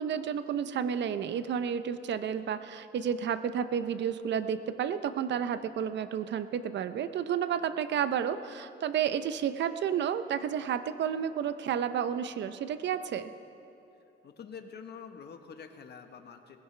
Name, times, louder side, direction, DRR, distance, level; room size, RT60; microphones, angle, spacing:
voice 1, 0.0-13.3, right 8 dB, 65° right, 12 dB, 0.7 m, -31 dB
voice 2, 13.9-16.6, left 6 dB, 55° left, 6 dB, 1.2 m, -47 dB
20.0 x 16.0 x 3.3 m, 2.8 s
cardioid pair, 90°, 20 cm